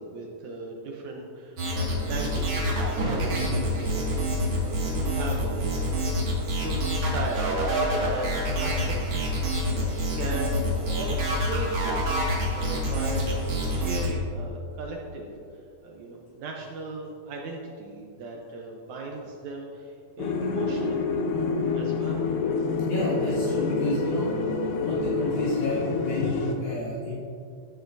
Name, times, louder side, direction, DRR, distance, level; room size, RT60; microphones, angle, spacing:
voice 1, 0.0-9.2 9.7-11.2 11.4-12.2 12.5-15.3 15.8-21.2 21.7-22.3, right 2 dB, 80° right, 0 dB, 1.7 m, -37 dB
sound 1, 1.6-14.1, equal, 45° right, 2.6 m, -27 dB
sound 2, 20.2-26.5, left 4 dB, 90° left, 2.8 m, -27 dB
voice 2, 22.8-24.3 24.8-27.2, left 1 dB, 75° left, -9 dB, 3.7 m, -29 dB
13.5 x 9.3 x 2.6 m, 2.4 s
omnidirectional pair, 4.3 m